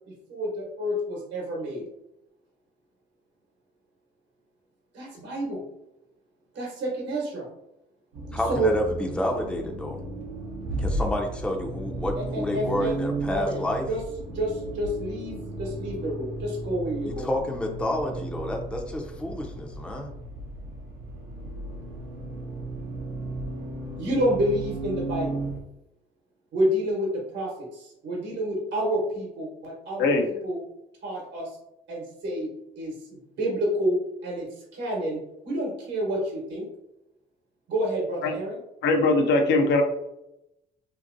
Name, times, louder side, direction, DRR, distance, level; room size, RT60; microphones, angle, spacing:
voice 1, 0.3-1.8 4.9-5.6 6.5-7.4 8.5-8.8 12.2-12.9 13.3-14.0 14.3-17.3 24.0-25.4 26.5-30.6 31.0-31.5 31.9-32.5 32.8-32.9 33.4-34.0 34.2-34.5 34.7-36.7 37.7-38.6, equal, 65° right, -2 dB, 1.0 m, -29 dB
Accelerating revving vroom, 8.1-25.6, right 2 dB, 90° right, 0.7 m, -35 dB
voice 2, 8.3-10.0 10.8-13.9 17.0-20.1, left 1 dB, 5° left, 2 dB, 0.5 m, -29 dB
voice 3, 38.8-39.8, left 3 dB, 70° left, 4 dB, 0.6 m, -21 dB
2.8 x 2.7 x 2.5 m, 0.86 s
supercardioid pair, 65°, 19 cm